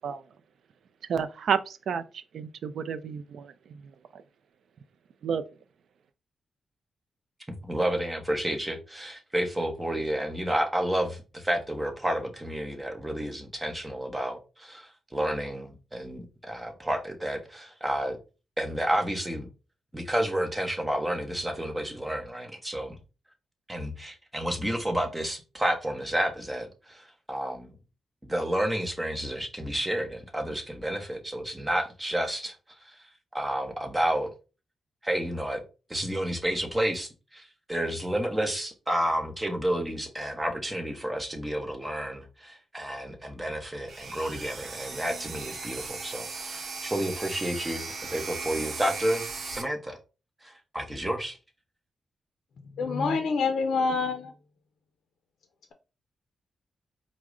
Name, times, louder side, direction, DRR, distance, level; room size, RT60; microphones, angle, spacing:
voice 1, 1.1-3.5 4.1-4.2 5.2-5.4, right 7 dB, 75° right, 0.4 m, -30 dB
voice 2, 7.6-18.2 18.6-19.5 19.9-23.0 23.7-26.7 27.3-27.7 28.3-32.5 33.3-34.3 35.0-35.6 35.9-37.4 37.7-47.8 48.1-50.0 50.7-51.4, right 1 dB, 10° right, 0.9 m, -30 dB
sound 1, 43.9-49.6, right 4 dB, 55° right, 0.8 m, -37 dB
voice 3, 52.8-54.3, left 4 dB, 75° left, 0.4 m, -26 dB
4.7 x 2.1 x 3.6 m
cardioid pair, 110°, 0 cm